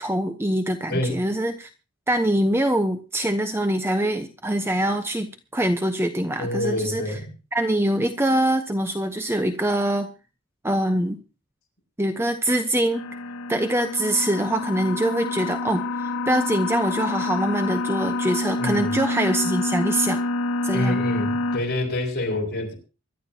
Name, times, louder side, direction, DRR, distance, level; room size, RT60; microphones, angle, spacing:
voice 1, 0.0-1.7 2.1-7.1 7.5-10.1 10.6-11.2 12.0-13.0 13.5-20.2 20.6-21.0, right 1 dB, 10° right, 7 dB, 0.9 m, -24 dB
voice 2, 0.9-1.2 6.4-7.3 18.6-18.9 20.7-22.7, left 1 dB, 45° left, 0 dB, 6.0 m, -27 dB
sound 1, 12.9-21.6, left 2 dB, 70° left, 2.4 m, -27 dB
24.5 x 12.0 x 2.9 m, 0.32 s
head